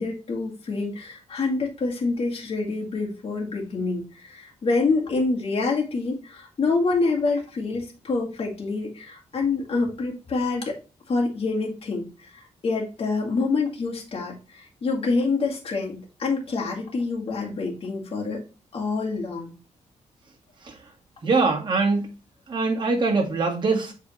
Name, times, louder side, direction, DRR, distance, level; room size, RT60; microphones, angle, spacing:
voice 1, 0.0-10.8 11.1-18.4 18.7-19.5, left 3 dB, 50° left, -2 dB, 1.9 m, -26 dB
voice 2, 21.2-22.0 22.5-23.9, right 3 dB, 40° right, 0 dB, 1.9 m, -22 dB
7.7 x 4.0 x 3.2 m, 0.32 s
cardioid pair, 115°, 12 cm